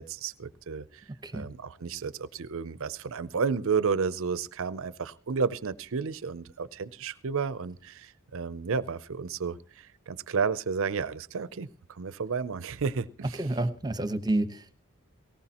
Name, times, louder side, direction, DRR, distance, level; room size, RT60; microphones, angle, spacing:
voice 1, 0.0-1.0 1.3-13.4, right 5 dB, 65° right, 0.6 m, -32 dB
voice 2, 13.4-14.8, right 1 dB, 20° right, 1.0 m, -29 dB
19.0 x 18.0 x 2.9 m
head